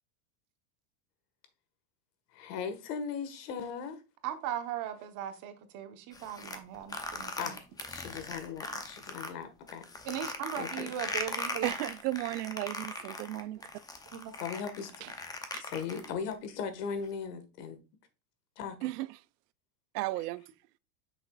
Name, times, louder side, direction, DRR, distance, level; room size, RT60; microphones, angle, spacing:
voice 1, 2.3-4.0 7.4-7.6 7.9-9.8 10.5-10.9 14.4-15.0 15.6-17.8 18.6-18.8, left 6 dB, 85° left, 1.7 m, -38 dB
voice 2, 4.2-7.5 10.1-11.7 14.1-14.3, right 10 dB, 40° right, 1.1 m, -38 dB
sound 1, 6.1-9.3 9.7-16.3, left 3 dB, 10° left, 0.6 m, -39 dB
voice 3, 11.6-13.7 15.0-15.1 15.5-15.6 18.8-19.1 19.9-20.4, right 17 dB, 85° right, 0.6 m, -34 dB
7.9 x 6.4 x 2.4 m
supercardioid pair, 145°, 46 cm